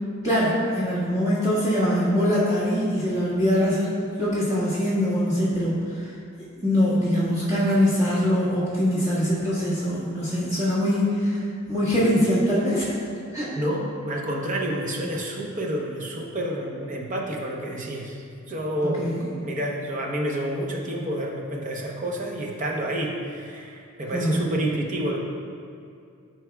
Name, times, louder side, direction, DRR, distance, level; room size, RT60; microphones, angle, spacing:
voice 1, 0.2-6.1 6.6-13.0 13.3-13.5 19.0-19.3 24.1-24.5, equal, 20° right, -12 dB, 1.6 m, -23 dB
voice 2, 13.6-25.2, right 1 dB, 40° right, -1 dB, 0.8 m, -29 dB
12.0 x 4.5 x 2.3 m, 2.4 s
head